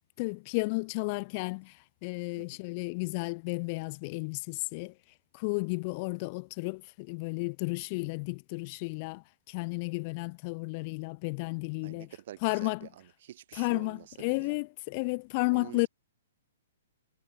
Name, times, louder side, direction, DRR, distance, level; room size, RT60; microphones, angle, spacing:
voice 1, 0.2-4.9 5.3-12.1 12.4-12.9 13.6-15.9, left 29 dB, 35° left, 2.4 m, -33 dB
voice 2, 11.8-14.6 15.5-15.9, right 12 dB, 55° right, 7.4 m, -48 dB
hypercardioid pair, 145°, 0 cm